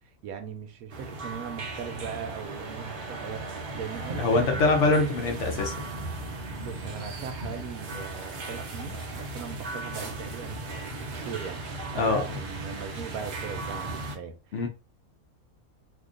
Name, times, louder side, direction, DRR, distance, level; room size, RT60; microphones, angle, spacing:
voice 1, 0.2-4.9 6.6-11.6 11.9-14.7, right 7 dB, 75° right, 1.1 m, -39 dB
sound 1, 0.9-14.2, right 2 dB, 50° right, 0.7 m, -36 dB
voice 2, 4.2-5.8 11.9-12.2 14.5-14.7, left 3 dB, 60° left, 0.8 m, -24 dB
2.8 x 2.4 x 3.6 m
omnidirectional pair, 1.6 m